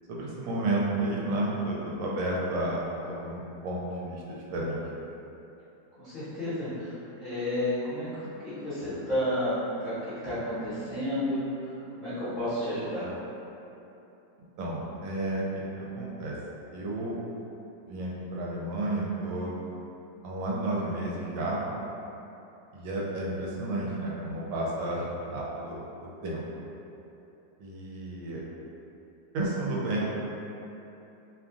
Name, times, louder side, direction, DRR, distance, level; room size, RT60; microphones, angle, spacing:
voice 1, 0.1-4.8 14.6-16.3 16.7-17.1 17.9-19.5 20.2-21.6 22.7-26.6 27.6-28.4 29.3-30.1, right 2 dB, 85° right, -4 dB, 1.3 m, -32 dB
voice 2, 6.0-9.5 9.8-11.4 11.9-13.1, left 1 dB, 35° left, -16 dB, 0.9 m, -31 dB
3.2 x 2.4 x 2.4 m, 2.9 s
omnidirectional pair, 2.0 m